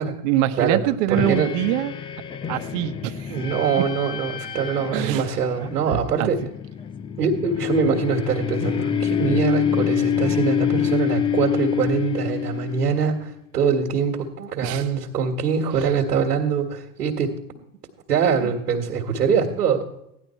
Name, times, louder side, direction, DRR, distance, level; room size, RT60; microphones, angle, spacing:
voice 1, 0.0-1.9 2.5-3.3 4.9-6.3 14.6-14.9 18.4-18.5, right 13 dB, 55° right, 10 dB, 1.1 m, -25 dB
voice 2, 1.1-1.5 3.3-6.4 7.2-17.4 18.1-19.9, right 6 dB, 90° right, 0 dB, 1.9 m, -23 dB
sound 1, 1.2-13.2, left 9 dB, 10° left, 0.3 m, -26 dB
15.5 x 11.0 x 4.4 m, 0.84 s
hypercardioid pair, 115°, 46 cm